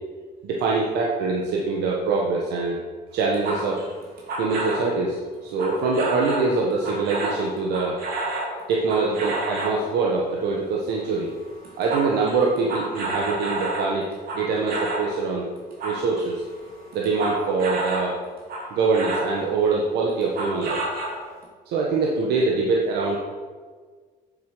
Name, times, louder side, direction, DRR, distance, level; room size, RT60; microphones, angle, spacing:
voice 1, 0.4-2.8 3.1-3.8 4.4-8.0 8.7-11.3 11.8-15.5 15.8-16.4 16.9-18.2 18.7-20.8 21.7-23.2, right 4 dB, 80° right, -1 dB, 1.4 m, -24 dB
sound 1, 3.2-4.9 5.6-6.5 6.8-9.8 10.9-11.2 11.4-15.1 15.6-18.1 18.5-19.3 20.2-21.4, right 2 dB, 60° right, 3.3 m, -30 dB
9.5 x 8.1 x 5.1 m, 1.5 s
cardioid pair, 110°, 17 cm